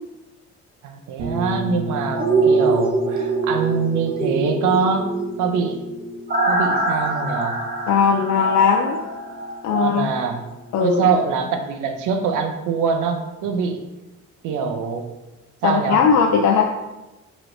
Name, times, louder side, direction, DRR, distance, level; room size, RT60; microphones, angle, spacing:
voice 1, 0.8-5.8 6.5-7.6 9.7-10.4 10.8-13.8 14.4-15.1 15.6-16.0, right 5 dB, 90° right, 5 dB, 0.6 m, -23 dB
sound 1, 1.2-10.9, equal, 65° right, 1.0 m, -35 dB
sound 2, 2.2-10.1 10.4-10.5, right 3 dB, 30° right, 0.7 m, -23 dB
voice 2, 7.9-9.0 9.6-10.1 10.7-11.1 15.6-16.6, left 6 dB, 65° left, 1 dB, 0.5 m, -18 dB
4.6 x 3.0 x 2.6 m, 1.0 s
cardioid pair, 90°, 30 cm